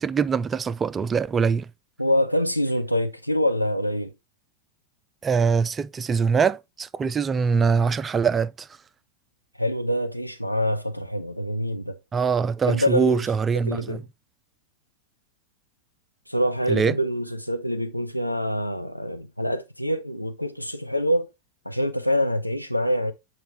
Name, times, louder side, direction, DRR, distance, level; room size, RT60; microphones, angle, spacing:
voice 1, 0.0-1.7 5.2-8.7 12.1-14.0 16.7-16.9, right 5 dB, 20° right, 0.4 m, -23 dB
voice 2, 2.0-4.1 9.6-12.0 12.7-13.2 13.7-14.0 16.3-21.3 21.6-23.1, equal, 90° left, 0.8 m, -25 dB
7.9 x 4.4 x 3.4 m
figure-of-eight pair, 90°, 0 cm